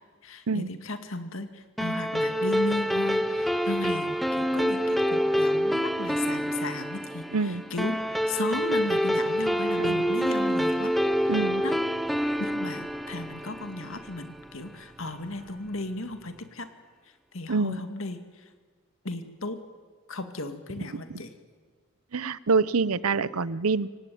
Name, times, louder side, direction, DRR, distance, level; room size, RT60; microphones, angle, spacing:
voice 1, 0.2-11.8 12.4-16.7 17.0-18.5 19.0-19.6 20.1-21.3, left 2 dB, 65° left, 8 dB, 2.2 m, -35 dB
sound 1, 1.8-14.5, equal, ahead, 0.7 m, -27 dB
voice 2, 7.3-7.6 9.8-10.0 11.3-11.6 17.5-17.8 21.1-21.2 22.1-23.9, right 4 dB, 85° right, 18 dB, 0.8 m, -26 dB
sound 2, 11.0-16.3, right 2 dB, 30° right, 5.4 m, -56 dB
25.0 x 18.0 x 9.4 m, 1.5 s
head